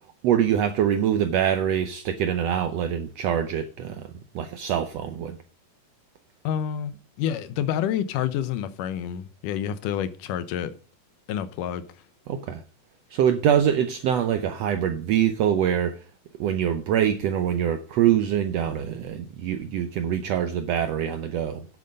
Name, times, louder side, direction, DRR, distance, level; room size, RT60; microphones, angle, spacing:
voice 1, 0.2-4.1 4.3-5.4 12.3-12.6 13.1-16.0 16.4-21.7, right 9 dB, 75° right, 1.5 m, -24 dB
voice 2, 6.4-6.9 7.2-10.8 11.3-11.8, left 9 dB, 85° left, 2.4 m, -28 dB
9.5 x 7.7 x 5.3 m
omnidirectional pair, 3.7 m